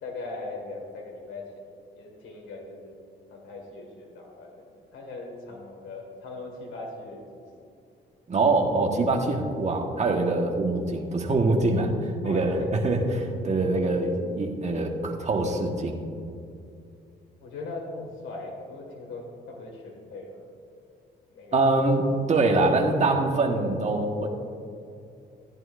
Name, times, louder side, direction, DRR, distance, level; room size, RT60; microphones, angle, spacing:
voice 1, 0.0-1.7 1.9-3.0 3.3-7.5 8.4-8.5 12.2-12.7 17.4-20.4 21.3-21.7, left 2 dB, 80° left, 0 dB, 2.0 m, -40 dB
voice 2, 8.3-16.0 21.5-24.3, right 2 dB, 35° right, 1 dB, 1.4 m, -24 dB
15.0 x 10.5 x 2.6 m, 2.5 s
cardioid pair, 90°, 20 cm